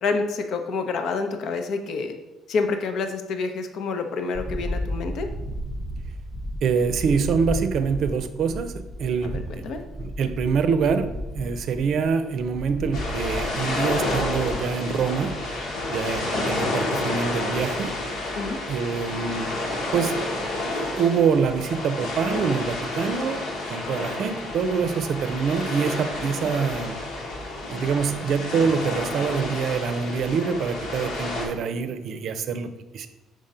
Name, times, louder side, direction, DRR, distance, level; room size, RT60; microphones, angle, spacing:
voice 1, 0.0-2.1 2.5-5.3 9.2-9.8 18.4-18.6, left 4 dB, 65° left, 6 dB, 0.7 m, -28 dB
sound 1, 4.3-14.6, left 1 dB, 5° left, 0.6 m, -34 dB
voice 2, 6.6-8.7 9.0-9.4 10.0-11.1 11.3-15.3 15.9-17.9 18.7-19.5 19.9-20.4 20.7-23.4 23.7-27.0 27.7-33.1, right 6 dB, 60° right, 10 dB, 0.5 m, -25 dB
sound 2, 12.9-31.4, left 2 dB, 85° left, 1.7 m, -30 dB
5.0 x 3.7 x 5.4 m, 1.1 s
cardioid pair, 100°, 0 cm